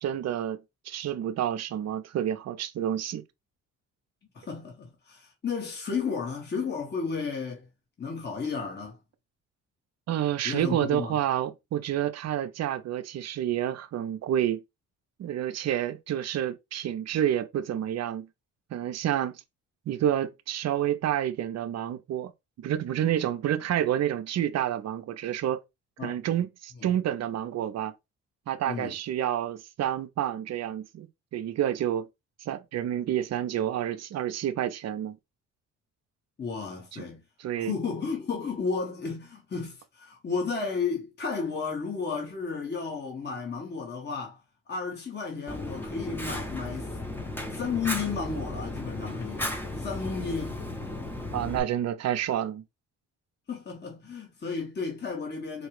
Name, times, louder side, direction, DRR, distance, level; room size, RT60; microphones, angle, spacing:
voice 1, 0.0-0.6 0.8-3.2 10.1-14.6 15.2-18.3 18.7-19.4 19.9-22.3 22.6-25.6 26.0-27.9 28.5-32.1 32.4-35.2 36.9-37.0 37.4-37.7 51.3-52.6, right 11 dB, 60° right, 0.6 m, -29 dB
voice 2, 4.3-7.6 8.0-9.0 10.4-11.2 26.0-26.2 28.7-28.9 36.4-37.2 37.6-44.4 44.7-46.9 47.5-49.5 49.8-50.6 53.5-55.7, left 5 dB, 35° left, 1.4 m, -33 dB
Fire, 45.5-51.6, left 1 dB, 5° left, 0.9 m, -35 dB
4.5 x 2.3 x 3.2 m
cardioid pair, 90°, 30 cm